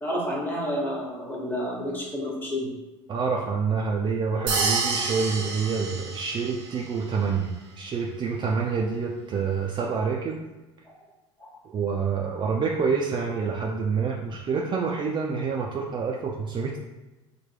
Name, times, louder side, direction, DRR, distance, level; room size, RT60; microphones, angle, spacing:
voice 1, 0.0-2.7 10.8-10.9 11.4-11.5, equal, 10° left, -3 dB, 1.2 m, -30 dB
voice 2, 3.1-10.5 11.6-16.8, right 5 dB, 30° right, -1 dB, 0.4 m, -27 dB
sound 1, 4.5-6.8, right 4 dB, 70° right, 0.7 m, -28 dB
4.4 x 2.2 x 3.2 m, 1.1 s
figure-of-eight pair, 65°, 16 cm